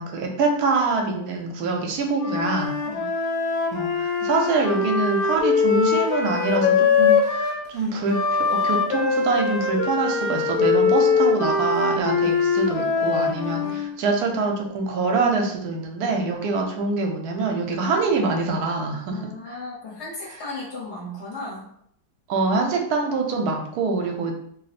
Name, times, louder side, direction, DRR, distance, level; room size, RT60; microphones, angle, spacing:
voice 1, 0.0-2.7 3.7-8.2 8.5-19.6 22.3-24.3, right 3 dB, 80° right, 2 dB, 1.1 m, -25 dB
Wind instrument woodwind instrument, 2.1-7.6 8.1-13.9, left 5 dB, 85° left, 1.1 m, -22 dB
voice 2, 13.5-13.9 19.1-21.7, left 2 dB, 50° left, -4 dB, 1.1 m, -36 dB
2.7 x 2.0 x 4.0 m, 0.69 s
omnidirectional pair, 1.6 m